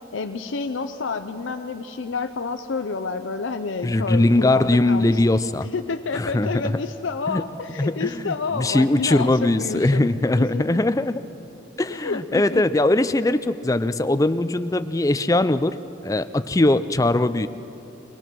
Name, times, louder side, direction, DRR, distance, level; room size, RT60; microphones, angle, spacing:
voice 1, 0.1-5.2 5.7-10.1 10.4-10.8 11.9-12.6, left 4 dB, 85° left, 8 dB, 0.6 m, -29 dB
voice 2, 3.8-5.7 6.1-6.6 7.3-7.4 7.8-11.2 11.8-15.7 16.0-17.5, left 2 dB, 15° left, 12 dB, 0.4 m, -21 dB
24.0 x 18.0 x 6.1 m, 2.9 s
head